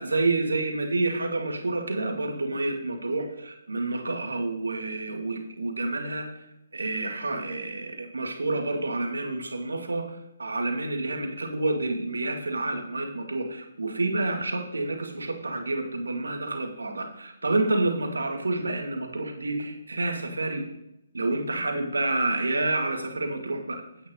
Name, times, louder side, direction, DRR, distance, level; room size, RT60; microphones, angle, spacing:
voice 1, 0.0-6.3 6.7-20.7 21.1-23.8, right 2 dB, 90° right, 3 dB, 2.5 m, -29 dB
10.5 x 8.3 x 3.9 m, 0.84 s
hypercardioid pair, 150°, 0 cm